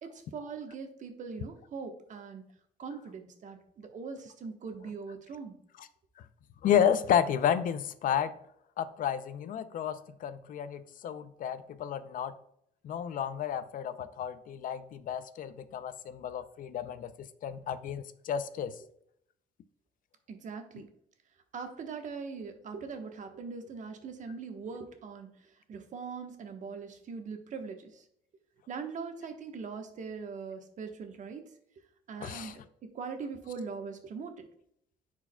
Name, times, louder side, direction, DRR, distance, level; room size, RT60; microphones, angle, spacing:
voice 1, 0.0-2.5 2.8-5.6 20.3-20.9 21.5-28.0 28.7-31.4 32.1-34.5, right 5 dB, 45° right, 5 dB, 1.1 m, -41 dB
voice 2, 6.6-8.3 8.8-12.3 12.8-18.7 32.2-32.5, left 9 dB, 55° left, 12 dB, 0.5 m, -31 dB
9.7 x 4.7 x 2.2 m, 0.71 s
cardioid pair, 110°, 17 cm